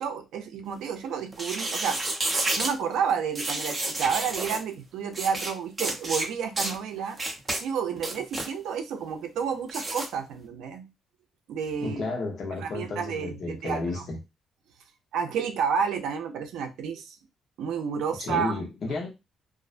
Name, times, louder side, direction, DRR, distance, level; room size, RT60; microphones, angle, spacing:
voice 1, 0.0-2.0 2.6-7.2 7.6-10.9 11.5-12.0 12.6-14.1 15.1-17.2 17.6-18.6, right 7 dB, 85° right, 0.4 m, -30 dB
sound 1, 1.3-2.7 3.4-4.6 5.1-5.5 5.8-6.3 6.6-6.8 7.2-7.6 8.0-8.5 9.7-10.1, right 2 dB, 25° right, 0.7 m, -30 dB
voice 2, 11.8-14.2 18.2-19.1, left 3 dB, 60° left, 0.8 m, -32 dB
2.4 x 2.0 x 2.4 m
cardioid pair, 90°, 0 cm